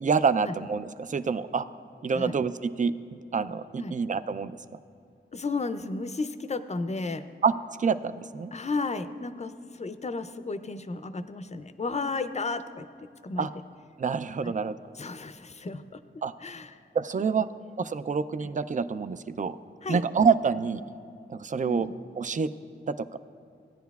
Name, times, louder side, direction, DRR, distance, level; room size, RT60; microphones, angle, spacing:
voice 1, 0.0-1.7 2.0-4.5 7.4-7.5 7.8-8.5 13.4-13.5 14.0-14.8 16.2-16.3 16.9-17.5 17.8-19.6 19.9-20.8 21.3-21.9 22.2-22.5 22.9-23.2, right 5 dB, 40° right, 13 dB, 0.4 m, -27 dB
voice 2, 5.3-7.2 8.5-12.9 13.2-13.5 14.4-14.5 15.0-16.0 16.4-16.8 17.2-17.4 18.4-18.5 19.8-20.0 21.7-21.9, left 3 dB, 35° left, 11 dB, 0.5 m, -33 dB
17.0 x 10.0 x 2.3 m, 2.5 s
wide cardioid pair, 70°, 20 cm